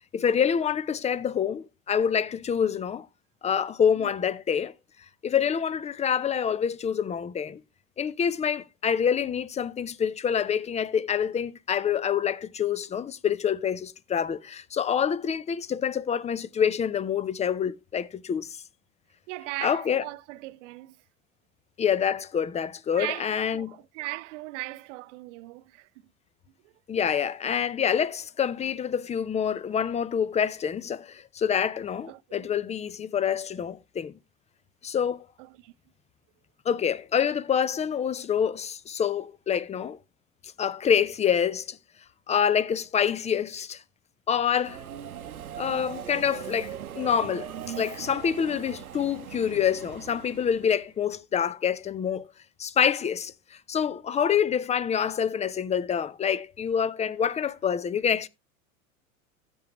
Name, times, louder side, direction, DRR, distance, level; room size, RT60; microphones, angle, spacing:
voice 1, 0.1-3.1 3.4-4.7 5.2-7.6 8.0-18.6 19.6-20.0 21.8-23.8 26.9-34.1 34.8-35.2 36.6-40.0 40.6-41.8 42.3-43.8 44.3-44.8 45.6-47.5 47.8-52.2 52.6-58.3, left 8 dB, 15° left, 0.6 m, -26 dB
voice 2, 19.3-21.0 22.9-25.9 32.1-32.5 35.4-35.7, right 20 dB, 60° right, 0.7 m, -38 dB
Subway metro underground, 44.6-50.9, right 9 dB, 90° right, 0.8 m, -40 dB
14.5 x 7.1 x 3.0 m
hypercardioid pair, 90°, 42 cm